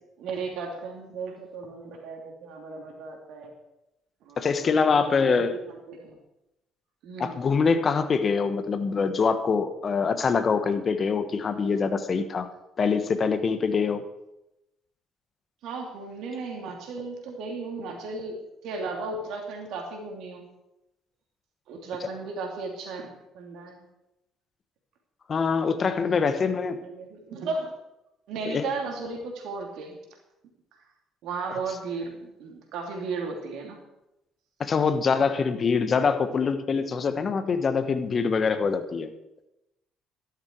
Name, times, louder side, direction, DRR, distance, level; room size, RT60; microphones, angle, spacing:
voice 1, 0.2-3.5 4.2-6.2 7.0-7.4 15.6-20.4 21.7-23.8 26.2-27.7 28.3-30.0 31.2-33.8, right 4 dB, 65° right, 2 dB, 3.0 m, -35 dB
voice 2, 4.4-5.5 7.2-12.5 12.8-14.0 22.0-22.1 25.3-26.8 28.4-28.7 34.6-39.1, left 5 dB, 45° left, 10 dB, 1.3 m, -24 dB
12.5 x 11.5 x 4.8 m, 0.91 s
hypercardioid pair, 50°, 0 cm